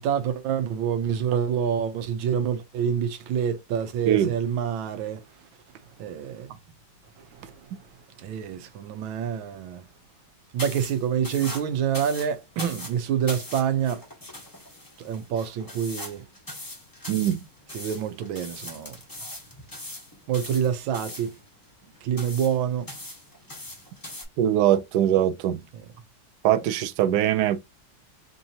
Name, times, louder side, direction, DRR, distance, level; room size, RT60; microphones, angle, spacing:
voice 1, 0.0-5.2 6.0-6.5 7.4-7.5 8.2-9.8 10.5-14.0 15.0-16.3 17.7-19.4 20.3-21.3 22.0-22.9, right 8 dB, 85° right, 1.5 m, -27 dB
sound 1, 10.6-24.3, left 1 dB, 15° left, 0.7 m, -41 dB
voice 2, 17.1-17.4 24.4-25.6 26.4-27.6, right 11 dB, 70° right, 1.1 m, -22 dB
4.5 x 2.6 x 2.8 m
omnidirectional pair, 2.1 m